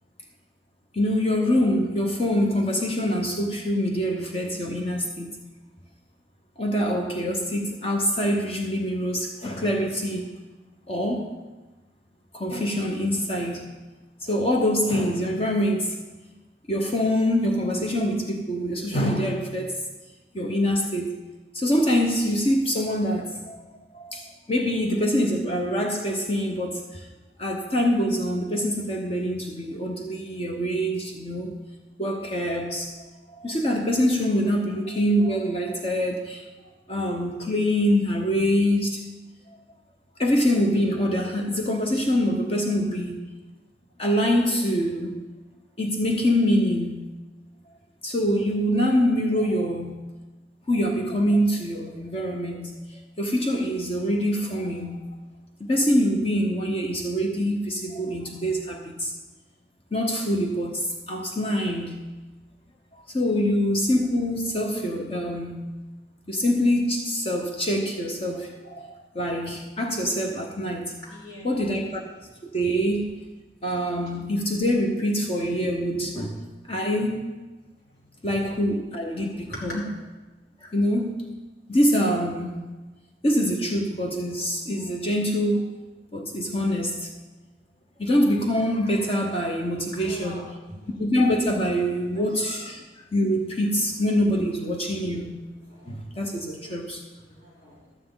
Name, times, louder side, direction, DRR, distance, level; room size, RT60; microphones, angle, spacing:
voice 1, 0.9-5.4 6.6-10.3 10.9-11.3 12.3-13.7 14.2-16.0 16.7-19.8 20.3-21.2 21.5-23.6 23.9-27.1 27.4-31.6 32.0-33.0 33.3-36.4 36.9-39.0 39.5-39.6 40.2-43.2 44.0-45.2 45.8-47.1 47.7-47.8 48.0-50.1 50.7-55.1 55.6-59.1 59.9-62.0 62.9-65.7 66.3-71.0 71.4-72.0 72.5-73.1 73.6-76.4 76.7-77.3 78.2-79.9 80.6-81.3 81.7-82.6 83.2-85.7 86.1-87.1 88.0-90.6 91.0-95.4 95.9-97.0, equal, 35° left, 1 dB, 0.9 m, -25 dB
voice 2, 71.0-71.7 78.3-78.4 79.5-79.8 89.9-90.4 90.8-90.9 92.1-92.2 95.7-96.0 97.3-97.8, left 1 dB, 80° left, -7 dB, 4.2 m, -41 dB
12.0 x 9.3 x 3.9 m, 1.2 s
head